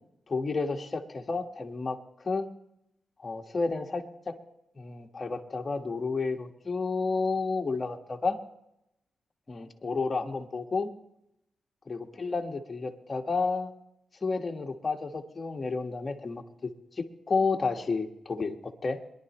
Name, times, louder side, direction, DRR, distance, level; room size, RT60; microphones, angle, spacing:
voice 1, 0.3-2.5 3.2-4.4 4.7-8.4 9.5-10.9 11.9-13.7 14.2-18.6 18.8-19.0, left 4 dB, 30° left, 3 dB, 1.6 m, -31 dB
22.0 x 11.5 x 3.1 m, 0.82 s
cardioid pair, 90°, 0 cm